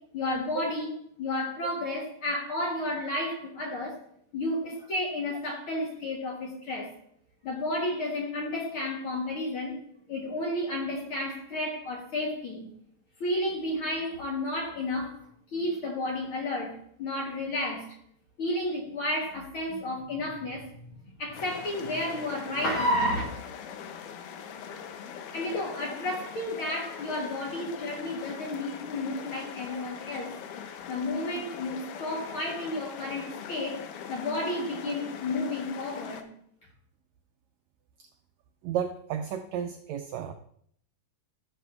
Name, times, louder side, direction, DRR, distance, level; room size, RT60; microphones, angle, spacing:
voice 1, 0.1-0.9 1.2-4.0 4.3-6.9 7.4-9.8 10.1-12.7 13.2-15.2 15.5-17.9 18.4-23.2 25.3-30.3 30.9-36.3, left 1 dB, 55° left, 1.7 m, -32 dB
sound 1, 21.3-36.2, left 8 dB, 80° left, 2.3 m, -41 dB
voice 2, 38.6-40.3, right 8 dB, 85° right, 1.5 m, -33 dB
15.0 x 7.2 x 2.4 m
omnidirectional pair, 3.7 m